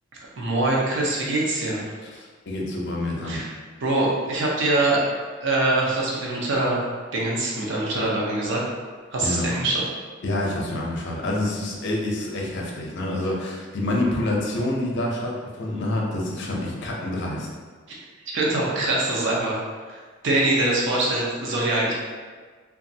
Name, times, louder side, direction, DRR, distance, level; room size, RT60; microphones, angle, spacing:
voice 1, 0.4-1.9 3.2-3.5 3.8-5.0 5.4-6.8 7.1-8.6 9.1-9.8 18.3-19.6 19.9-20.0 20.2-21.9, right 2 dB, 65° right, -4 dB, 0.6 m, -23 dB
voice 2, 2.0-3.4 9.2-9.5 10.2-17.5, left 1 dB, 60° left, -2 dB, 0.6 m, -27 dB
3.0 x 2.3 x 2.7 m, 1.5 s
head